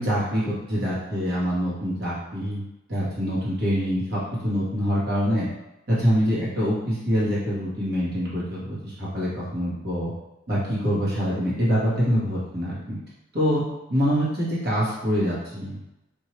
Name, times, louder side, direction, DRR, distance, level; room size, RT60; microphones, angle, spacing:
voice 1, 0.0-2.6 2.9-5.5 5.9-10.1 10.5-13.0 13.3-13.6 13.9-15.8, equal, 50° right, -7 dB, 1.4 m, -25 dB
4.6 x 2.7 x 3.1 m, 0.95 s
head